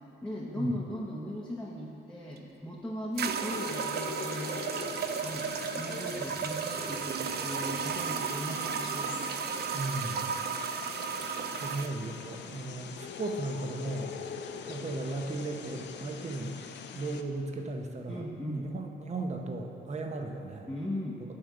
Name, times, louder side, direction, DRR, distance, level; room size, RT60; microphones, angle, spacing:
voice 1, 0.2-4.6 5.2-9.2 18.1-18.6 20.7-21.2, left 1 dB, 5° left, -5 dB, 0.8 m, -38 dB
sound 1, 2.4-2.5 3.2-11.9, right 7 dB, 55° right, 0.5 m, -34 dB
sound 2, 3.5-17.2, left 7 dB, 60° left, 0.5 m, -43 dB
voice 2, 9.7-10.3 11.5-14.1 14.7-16.6 16.9-20.7, right 2 dB, 35° right, 3 dB, 0.8 m, -36 dB
9.8 x 3.6 x 6.8 m, 2.7 s
cardioid pair, 90°, 20 cm